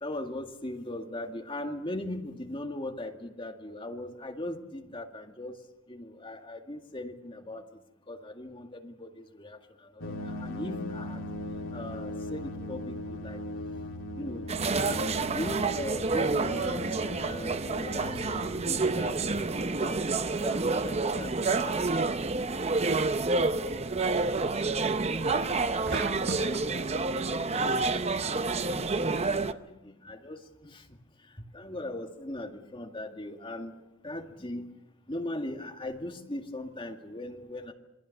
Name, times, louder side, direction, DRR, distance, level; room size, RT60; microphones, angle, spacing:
voice 1, 0.0-5.6 5.9-7.6 8.1-9.6 10.0-11.2 11.7-13.4 14.2-14.4 15.3-19.2 19.5-20.0 20.4-22.3 22.6-22.7 23.0-27.7 28.3-28.9 29.2-30.8 31.5-33.7 34.0-34.6 35.1-37.7, left 1 dB, 25° left, 4 dB, 2.1 m, -39 dB
sound 1, 10.0-19.4, left 1 dB, 90° left, 2.4 m, -39 dB
sound 2, 14.5-29.5, right 3 dB, 30° right, 0.8 m, -29 dB
sound 3, 25.9-26.7, right 2 dB, 50° right, 1.4 m, -35 dB
27.5 x 21.5 x 6.6 m, 0.89 s
head